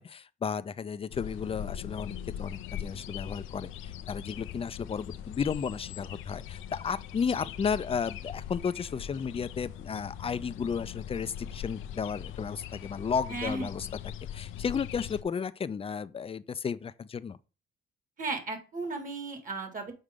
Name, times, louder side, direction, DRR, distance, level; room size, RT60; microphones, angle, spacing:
voice 1, 0.0-13.9 14.3-17.4, left 6 dB, 30° left, 0.5 m, -33 dB
sound 1, 1.1-15.2, left 10 dB, 85° left, 0.5 m, -41 dB
voice 2, 13.3-13.8 18.2-19.9, right 3 dB, 40° right, 2.2 m, -35 dB
6.5 x 4.7 x 3.7 m
cardioid pair, 90°, 20 cm